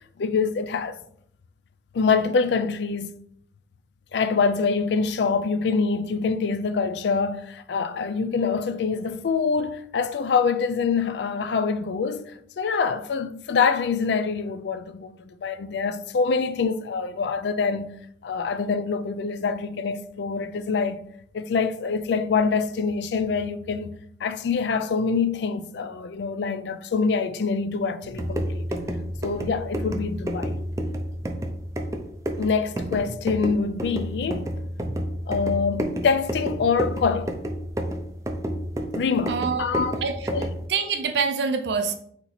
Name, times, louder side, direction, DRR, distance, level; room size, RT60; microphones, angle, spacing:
voice 1, 0.2-1.0 1.9-3.2 4.1-17.9 18.2-21.0 21.3-24.0 24.2-28.6 29.2-30.6 32.4-34.5 35.3-37.4 38.9-40.0 40.3-40.5, left 5 dB, 75° left, 0.4 m, -25 dB
sound 1, 28.0-40.7, equal, 15° right, 0.4 m, -30 dB
voice 2, 39.3-39.6 40.0-40.3 40.7-41.9, right 5 dB, 75° right, 0.5 m, -25 dB
4.2 x 2.9 x 4.0 m
head